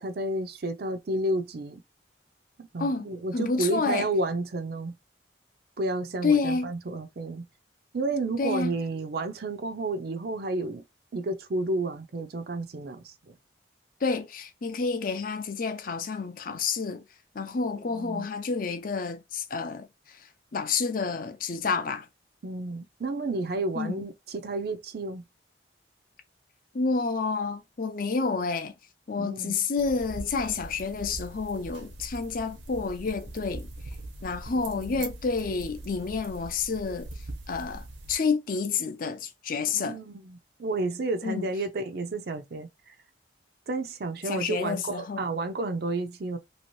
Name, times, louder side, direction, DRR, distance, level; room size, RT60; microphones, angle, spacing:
voice 1, 0.0-1.8 2.6-4.9 5.8-7.5 7.9-10.8 11.1-13.4 17.9-18.3 22.4-25.2 29.2-29.5 39.7-42.9 43.7-46.4, right 2 dB, 60° right, 0.5 m, -31 dB
voice 2, 3.3-4.1 6.2-6.7 8.4-8.7 14.0-17.0 17.3-22.1 23.8-24.1 26.7-28.7 29.1-33.7 34.2-37.1 37.5-40.0 41.2-41.5 44.3-45.3, left 4 dB, 50° left, 0.5 m, -29 dB
sound 1, 29.8-38.1, right 2 dB, 85° right, 0.9 m, -41 dB
2.9 x 2.7 x 3.1 m
head